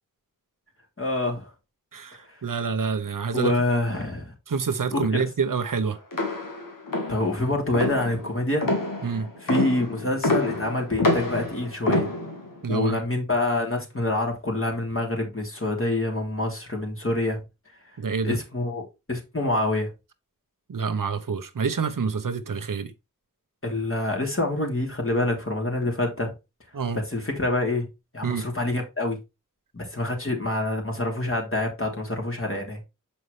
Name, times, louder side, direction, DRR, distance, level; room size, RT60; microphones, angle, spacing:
voice 1, 1.0-1.5 2.3-2.4 3.3-4.3 4.9-5.2 7.1-8.7 9.4-12.1 12.7-17.4 18.2-19.9 23.6-26.3 26.9-27.9 28.1-29.2 29.7-32.8, left 2 dB, 40° left, 3.0 m, -26 dB
voice 2, 1.9-3.5 4.5-6.0 9.0-9.3 12.6-13.0 18.0-18.4 20.7-22.9 26.7-27.0 28.2-28.4, right 5 dB, 80° right, 0.9 m, -27 dB
sound 1, 6.1-12.6, left 2 dB, 85° left, 1.7 m, -27 dB
6.9 x 5.4 x 3.2 m
wide cardioid pair, 45°, 32 cm